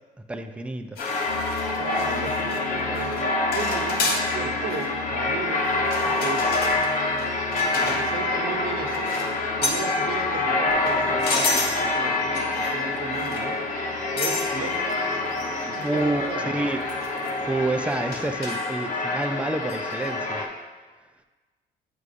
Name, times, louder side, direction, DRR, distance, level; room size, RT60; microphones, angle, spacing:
voice 1, 0.3-1.0 15.8-16.2 16.5-16.8 17.5-20.4, right 2 dB, 5° right, 7 dB, 0.4 m, -28 dB
sound 1, 1.0-2.6 3.0-3.2 3.5-4.3 4.7-4.9 5.8-8.2 8.9-9.3 9.6-9.9 10.7-11.8 12.3-12.8 13.1-13.5 14.2-14.5 14.9-15.0 15.4-15.5 15.8-15.9 16.9-17.3 18.1-18.7 19.7-19.9, left 3 dB, 70° left, 1.3 m, -30 dB
sound 2, 1.0-20.5, left 2 dB, 50° left, 1.0 m, -26 dB
sound 3, 1.3-18.3, left 6 dB, 85° left, 0.6 m, -42 dB
voice 2, 1.8-6.5 7.7-9.1 9.6-13.6 14.1-14.9 15.7-16.6, right 5 dB, 60° right, 2 dB, 1.0 m, -35 dB
8.1 x 4.6 x 2.5 m, 1.3 s
cardioid pair, 110°, 17 cm